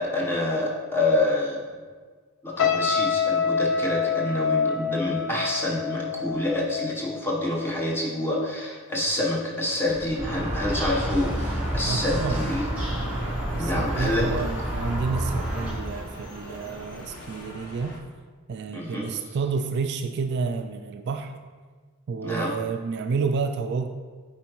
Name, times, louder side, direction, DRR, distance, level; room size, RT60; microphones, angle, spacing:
voice 1, 0.0-1.6 2.4-12.7 13.5-14.4 18.7-19.1 22.2-22.5, left 1 dB, 10° left, -4 dB, 1.0 m, -27 dB
sound 1, 2.6-7.9 8.2-8.5, left 6 dB, 60° left, 0.5 m, -27 dB
sound 2, 9.8-18.0, left 1 dB, 90° left, 1.1 m, -41 dB
sound 3, 10.2-15.7, right 1 dB, 5° right, 2.0 m, -29 dB
voice 2, 11.8-12.5 13.5-18.0 18.5-21.4 22.1-23.9, right 5 dB, 50° right, 7 dB, 0.3 m, -30 dB
8.4 x 4.6 x 3.1 m, 1.5 s
head